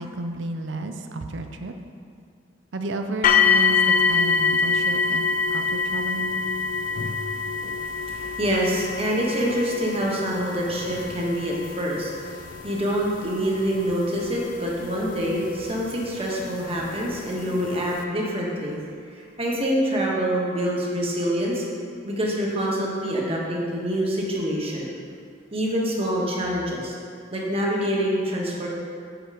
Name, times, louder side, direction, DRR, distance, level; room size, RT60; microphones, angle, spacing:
voice 1, 0.0-1.7 2.7-5.2 5.5-6.3, right 2 dB, 80° right, 6 dB, 0.6 m, -32 dB
sound 1, 3.2-16.1 17.0-17.1 17.6-17.7, left 5 dB, 45° left, 0.4 m, -25 dB
voice 2, 7.8-18.8 19.1-21.6 22.0-24.9 25.5-26.9 27.3-28.7, equal, 30° right, -3 dB, 1.2 m, -26 dB
8.0 x 4.6 x 4.8 m, 2.3 s
head